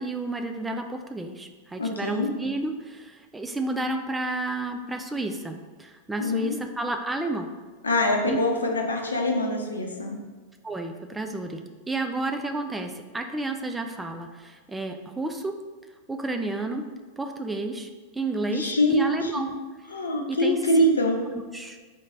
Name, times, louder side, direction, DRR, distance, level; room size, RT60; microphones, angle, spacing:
voice 1, 0.0-7.5 8.3-8.4 10.6-15.6 16.1-16.9 17.2-19.6 20.3-20.6 21.3-21.8, right 2 dB, 10° right, 5 dB, 0.3 m, -31 dB
voice 2, 1.8-2.3 6.2-6.5 7.8-10.2 18.5-19.3 19.9-21.2, left 1 dB, 75° left, 2 dB, 0.7 m, -24 dB
4.4 x 3.1 x 3.8 m, 1.4 s
figure-of-eight pair, 90°, 0 cm